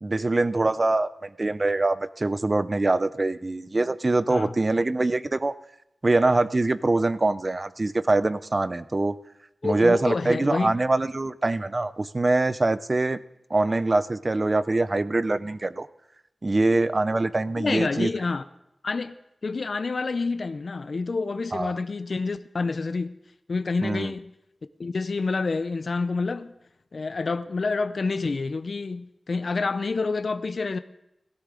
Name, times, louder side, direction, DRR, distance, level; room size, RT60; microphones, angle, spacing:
voice 1, 0.0-5.5 6.0-9.2 9.6-13.2 13.5-15.9 16.4-18.1 21.5-21.7 23.8-24.1, right 2 dB, 35° right, 0.5 m, -24 dB
voice 2, 9.6-10.7 17.6-18.4 18.8-19.1 19.4-23.1 23.5-24.3 24.8-26.5 26.9-30.8, left 4 dB, 60° left, 0.5 m, -28 dB
17.0 x 13.0 x 3.8 m
wide cardioid pair, 90°, 0 cm